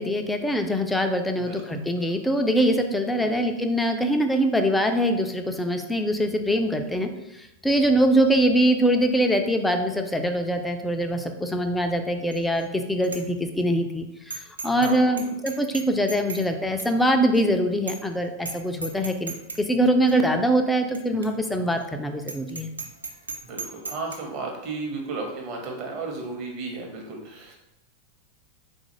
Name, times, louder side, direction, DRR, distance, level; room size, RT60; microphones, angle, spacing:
voice 1, 0.0-7.1 7.4-14.1 14.3-19.3 19.7-22.7, equal, 5° left, 5 dB, 0.3 m, -23 dB
voice 2, 3.1-3.5 14.6-15.4 23.4-27.5, right 3 dB, 40° right, 0 dB, 0.9 m, -34 dB
Bicycle bell, 12.3-12.6 13.0-13.2 13.6-13.7 14.3-14.9 15.2-16.5 16.8-16.9 17.3-17.4 17.9-18.1 18.4-18.6 18.8-19.6 20.1-20.2 20.9-21.0 21.2-21.3 21.7-21.8 22.2-24.2, right 3 dB, 75° right, 0.4 m, -35 dB
3.7 x 2.4 x 3.0 m, 0.90 s
figure-of-eight pair, 90°, 0 cm